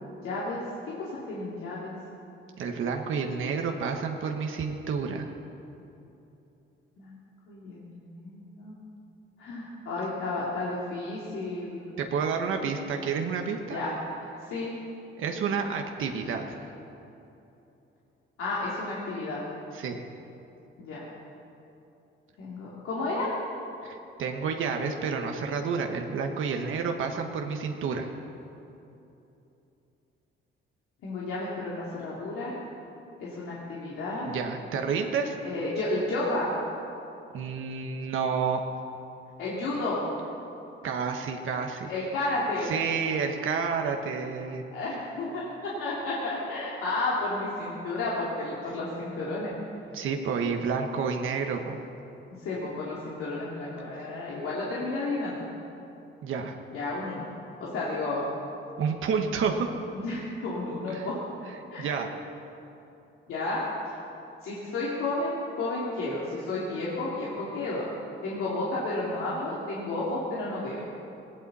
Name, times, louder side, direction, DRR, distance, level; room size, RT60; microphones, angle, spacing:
voice 1, 0.2-0.6 1.0-1.9 7.0-7.2 7.5-8.8 9.4-12.0 13.7-13.9 14.4-14.7 18.4-19.4 20.8-21.1 22.4-23.3 31.0-32.6 33.2-34.3 35.4-36.5 39.4-40.0 41.9-42.7 44.7-49.5 52.4-55.5 56.7-57.2 57.6-58.2 59.9-61.2 61.7-61.9 63.3-63.6 64.4-67.9 68.2-70.8, left 2 dB, 90° left, -7 dB, 2.9 m, -32 dB
voice 2, 2.6-5.3 12.0-13.8 15.2-16.6 19.7-20.0 23.8-28.1 34.2-35.3 37.3-38.6 40.8-41.9 42.6-44.6 49.9-51.8 56.2-56.6 58.8-59.7 60.9-61.1 61.8-62.1, right 5 dB, 70° right, 3 dB, 1.3 m, -30 dB
18.5 x 18.0 x 4.2 m, 2.9 s
cardioid pair, 125°, 21 cm